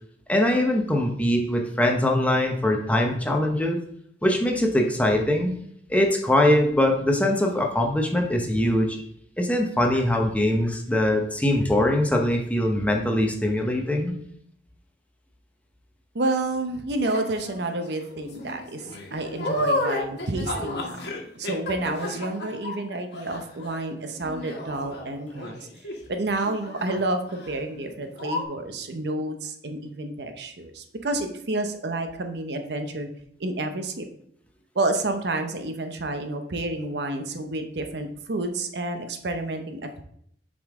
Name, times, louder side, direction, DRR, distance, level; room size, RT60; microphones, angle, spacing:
voice 1, 0.3-3.8 4.2-5.5 5.9-9.0 9.4-14.2, left 1 dB, 10° left, 2 dB, 0.7 m, -22 dB
voice 2, 16.1-21.1 21.3-25.7 26.1-33.1 33.4-34.1 34.7-40.0, right 2 dB, 65° right, 6 dB, 0.7 m, -29 dB
sound 1, 17.0-17.6 18.1-26.1 26.4-27.0 27.3-27.6 27.8-27.9 28.2-28.4, left 1 dB, 65° left, 1.4 m, -32 dB
7.0 x 5.1 x 3.6 m, 0.69 s
head